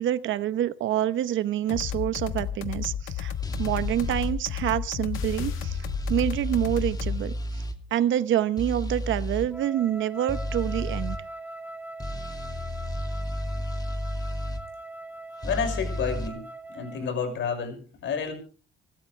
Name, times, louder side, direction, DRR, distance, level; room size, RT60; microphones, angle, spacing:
voice 1, 0.0-3.3 3.6-5.8 6.1-7.3 7.9-11.2, right 11 dB, 75° right, 13 dB, 1.0 m, -27 dB
sound 1, 1.7-7.2, left 9 dB, 90° left, 1.4 m, -32 dB
sound 2, 3.4-4.3 5.1-7.8 8.6-9.5 10.3-11.2 12.0-14.6 15.4-16.3, left 1 dB, 20° left, 2.4 m, -32 dB
Wind instrument woodwind instrument, 9.5-17.2, right 2 dB, 10° right, 1.4 m, -41 dB
voice 2, 15.4-16.4 16.7-18.3, left 6 dB, 75° left, 6 dB, 6.0 m, -30 dB
27.5 x 12.5 x 3.4 m, 0.39 s
cardioid pair, 90°, 20 cm